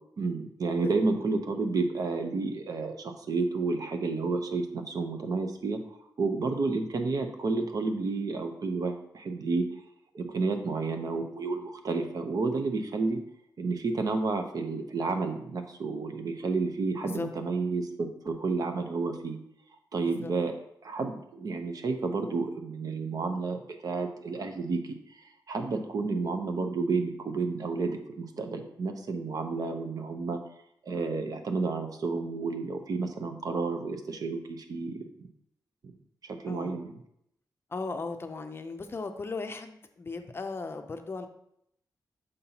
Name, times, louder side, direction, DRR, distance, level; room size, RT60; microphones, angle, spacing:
voice 1, 0.2-5.8 6.2-9.6 10.1-13.2 13.6-19.4 19.9-20.5 20.8-30.4 30.9-35.3 36.2-37.0, right 3 dB, 60° right, 6 dB, 0.7 m, -31 dB
voice 2, 20.0-20.3 36.5-36.8 37.7-41.3, left 3 dB, 35° left, 6 dB, 0.5 m, -37 dB
6.6 x 5.5 x 2.9 m, 0.74 s
wide cardioid pair, 135°, 7 cm